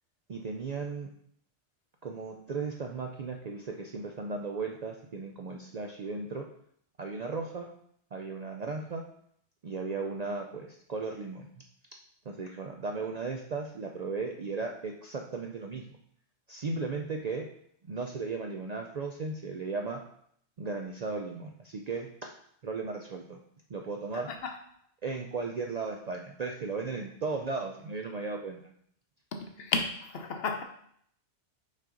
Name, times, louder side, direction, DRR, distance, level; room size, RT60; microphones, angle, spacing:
voice 1, 0.3-1.1 2.0-6.5 7.0-7.7 8.1-9.0 9.6-11.5 12.3-15.8 16.5-17.5 17.8-20.0 20.6-22.3 22.6-23.4 23.7-24.3 25.0-28.7, right 4 dB, 55° right, 2 dB, 0.4 m, -36 dB
voice 2, 24.1-24.6 29.3-30.6, left 4 dB, 60° left, 5 dB, 0.9 m, -33 dB
5.4 x 4.9 x 3.8 m, 0.67 s
omnidirectional pair, 1.2 m